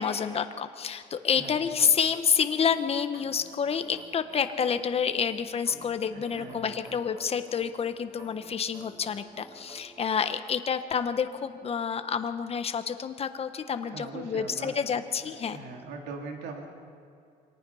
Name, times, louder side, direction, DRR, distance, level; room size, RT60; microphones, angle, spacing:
voice 1, 0.0-15.6, left 7 dB, 35° left, 9 dB, 1.2 m, -28 dB
voice 2, 1.2-1.7 6.1-6.8 13.8-14.7 15.2-16.7, right 4 dB, 85° right, 2 dB, 2.6 m, -41 dB
sound 1, 1.3-10.0, right 1 dB, 20° right, 4.2 m, -52 dB
25.5 x 18.5 x 5.7 m, 2.5 s
cardioid pair, 110°, 17 cm